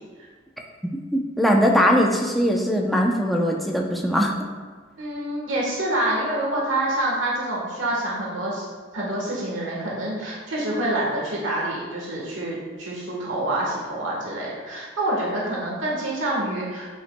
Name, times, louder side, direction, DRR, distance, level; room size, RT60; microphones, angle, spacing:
voice 1, 1.1-4.3, equal, ahead, -1 dB, 0.6 m, -20 dB
voice 2, 5.0-8.6 8.9-16.9, right 1 dB, 90° right, -4 dB, 1.3 m, -27 dB
8.2 x 5.6 x 2.2 m, 1.5 s
head